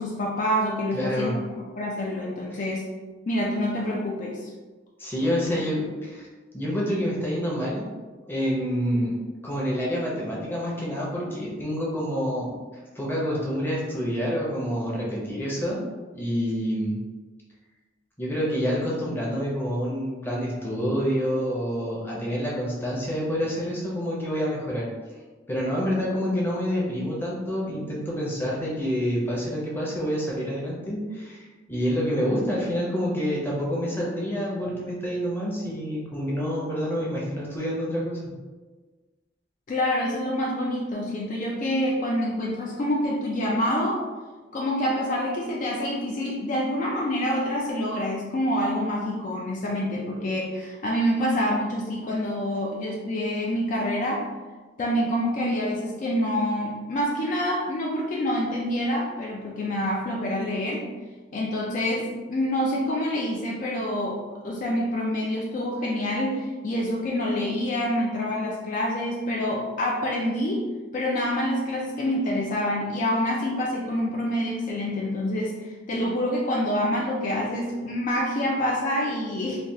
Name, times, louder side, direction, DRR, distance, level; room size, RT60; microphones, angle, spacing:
voice 1, 0.0-1.4 1.8-2.9 3.3-4.5 39.7-44.0 44.5-54.3 54.8-60.8 61.3-64.2 64.4-70.7 70.9-79.6, left 1 dB, 45° left, -2 dB, 0.4 m, -27 dB
voice 2, 0.9-1.3 2.5-2.6 5.0-6.3 6.5-7.9 8.3-9.2 9.4-12.5 12.9-15.8 16.1-17.0 18.2-24.9 25.5-38.2, equal, 10° left, -5 dB, 0.7 m, -27 dB
3.2 x 2.3 x 2.7 m, 1.3 s
head